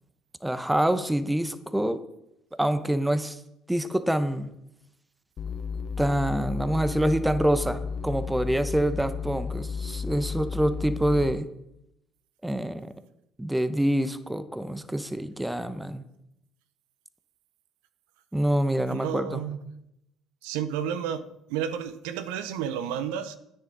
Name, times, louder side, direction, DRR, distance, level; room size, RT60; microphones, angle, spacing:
voice 1, 0.4-2.0 2.6-3.4 3.7-4.5 6.0-11.5 12.4-12.9 13.4-16.0 18.3-19.4, right 1 dB, 10° right, 12 dB, 1.0 m, -26 dB
sound 1, 5.4-11.3, left 5 dB, 50° left, 0.9 m, -33 dB
voice 2, 18.9-19.7 20.4-23.4, right 9 dB, 75° right, 13 dB, 0.8 m, -31 dB
12.5 x 9.9 x 4.1 m, 0.82 s
hypercardioid pair, 60°, 0 cm